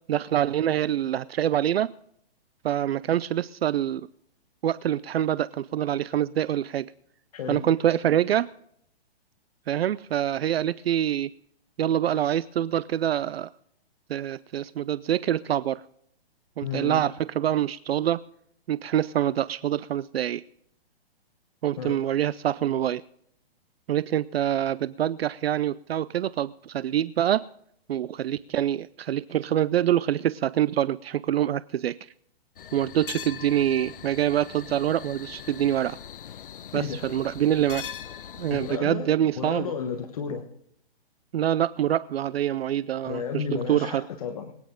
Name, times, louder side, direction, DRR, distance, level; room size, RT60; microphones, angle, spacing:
voice 1, 0.1-1.9 2.6-4.1 4.6-6.9 7.5-8.5 9.7-11.3 11.8-13.5 14.1-15.8 16.6-18.2 18.7-20.4 21.6-23.0 23.9-27.4 27.9-32.0 32.7-36.0 36.7-37.8 38.4-39.7 41.3-44.1, right 11 dB, 70° right, 18 dB, 0.5 m, -25 dB
voice 2, 7.3-7.6 16.6-17.0 21.8-22.0 36.7-37.1 38.5-40.5 43.0-44.5, left 7 dB, 35° left, 6 dB, 1.1 m, -33 dB
sound 1, 32.6-38.8, left 9 dB, 55° left, 0.7 m, -41 dB
24.0 x 9.3 x 3.7 m, 0.69 s
hypercardioid pair, 170°, 31 cm